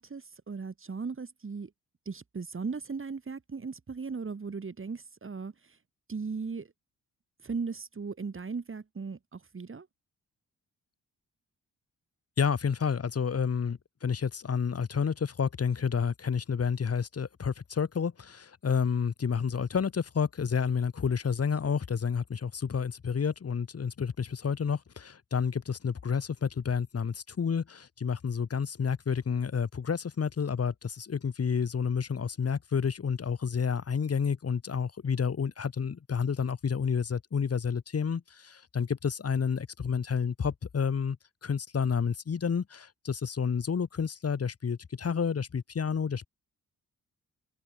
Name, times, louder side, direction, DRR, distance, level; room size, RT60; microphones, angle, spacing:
voice 1, 0.0-1.7 2.1-5.8 6.1-6.7 7.4-9.9, right 5 dB, 40° right, 7.3 m, -37 dB
voice 2, 12.4-41.2 41.4-46.3, left 6 dB, 45° left, 2.8 m, -30 dB
cardioid pair, 85°, 33 cm